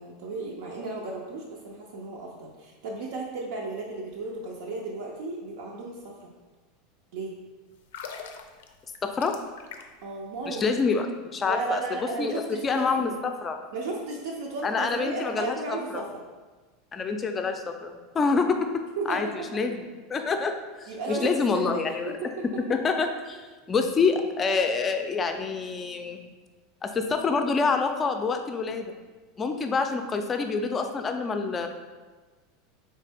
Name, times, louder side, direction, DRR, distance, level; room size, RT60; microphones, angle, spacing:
voice 1, 0.0-6.3 7.1-7.4 10.0-10.8 11.5-13.1 13.7-16.2 19.0-19.5 20.9-22.4, right 3 dB, 75° right, -2 dB, 0.6 m, -34 dB
sound 1, 7.8-10.1 10.4-10.6, left 6 dB, 85° left, 0.4 m, -42 dB
voice 2, 9.0-9.3 10.5-11.8 12.2-13.1 13.4-13.6 14.6-16.0 16.9-18.6 19.1-19.8 20.1-22.1 22.7-26.3 26.8-28.9 29.4-31.7, left 4 dB, 20° left, 6 dB, 0.4 m, -27 dB
3.7 x 3.2 x 3.4 m, 1.3 s
supercardioid pair, 135°, 0 cm